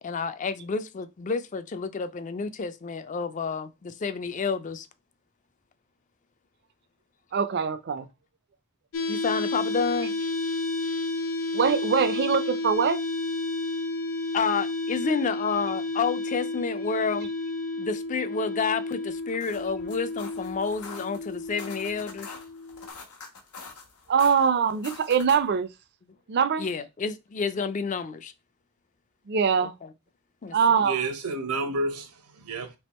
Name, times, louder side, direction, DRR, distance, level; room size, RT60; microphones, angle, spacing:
voice 1, 0.0-4.9 9.1-10.2 14.3-17.3 17.8-22.4 26.6-28.3 29.6-29.9 30.4-30.8, left 5 dB, 35° left, 0.3 m, -30 dB
voice 2, 7.3-8.1 11.5-13.0 24.1-25.7 26.3-26.6 29.3-29.7 30.5-31.0, right 6 dB, 50° right, 0.4 m, -23 dB
sound 1, 8.9-22.9, left 2 dB, 65° left, 0.7 m, -31 dB
sound 2, 19.1-25.6, left 4 dB, 85° left, 1.1 m, -45 dB
voice 3, 30.5-32.7, right 3 dB, 90° right, 0.9 m, -31 dB
3.5 x 2.9 x 4.1 m
head